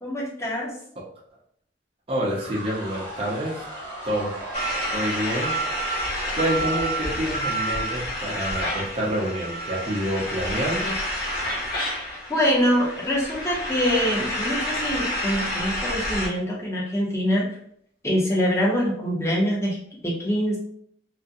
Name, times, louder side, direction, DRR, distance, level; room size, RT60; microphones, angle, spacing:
voice 1, 0.0-0.7 12.3-17.5 18.0-20.6, equal, 15° left, -4 dB, 0.7 m, -24 dB
voice 2, 2.1-3.6 4.0-4.3 4.9-5.5 6.3-11.0, equal, 35° right, -5 dB, 0.6 m, -27 dB
sound 1, 2.3-8.0, equal, 60° right, 0.9 m, -38 dB
sound 2, 4.5-16.3, equal, 60° left, 0.7 m, -29 dB
2.4 x 2.1 x 2.6 m, 0.67 s
head